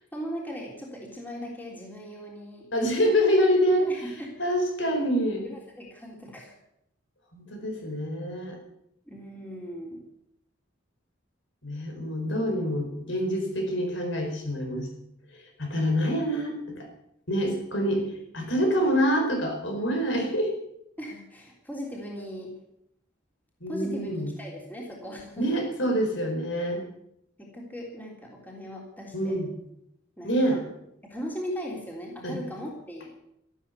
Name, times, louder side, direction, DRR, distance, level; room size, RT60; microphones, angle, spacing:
voice 1, 0.1-2.7 3.8-4.4 5.4-6.5 9.1-10.0 21.0-22.6 23.7-24.1 24.4-25.5 27.4-29.4 30.2-30.6 31.0-33.1, equal, 10° left, -2 dB, 3.5 m, -38 dB
voice 2, 2.7-3.9 4.4-5.5 7.3-8.6 11.6-14.9 15.6-16.9 17.3-18.1 18.3-20.5 23.6-24.3 25.4-26.8 29.1-29.5 30.2-30.6 32.2-32.4, equal, 70° left, 3 dB, 4.9 m, -26 dB
13.5 x 12.5 x 8.3 m, 0.78 s
head